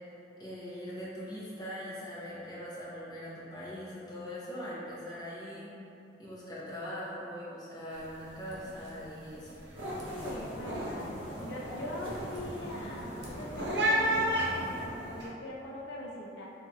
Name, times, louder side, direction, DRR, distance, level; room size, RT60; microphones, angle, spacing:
voice 1, 0.4-5.7 6.2-9.5, equal, 25° left, -9 dB, 0.8 m, -41 dB
sound 1, 7.9-8.2 8.4-8.9 9.3-15.2, right 1 dB, 85° right, 0.7 m, -33 dB
sound 2, 9.7-14.9, equal, 30° right, 1.1 m, -44 dB
voice 2, 10.1-11.2 11.4-16.5, left 1 dB, 70° left, -3 dB, 0.4 m, -41 dB
4.6 x 2.4 x 2.7 m, 2.8 s
head